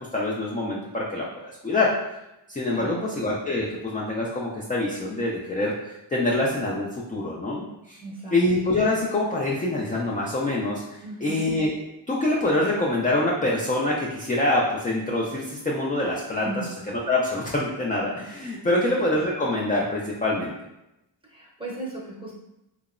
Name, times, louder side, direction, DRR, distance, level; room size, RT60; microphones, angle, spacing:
voice 1, 0.1-1.2 1.6-1.9 2.5-8.0 8.3-11.7 12.1-16.5 17.1-20.5, left 2 dB, 20° left, -4 dB, 0.3 m, -25 dB
voice 2, 2.7-3.1 8.0-8.4 11.0-11.5 16.4-16.7 18.7-18.9 21.3-22.3, right 2 dB, 10° right, -5 dB, 0.7 m, -36 dB
2.8 x 2.0 x 2.4 m, 0.90 s
wide cardioid pair, 60°, 49 cm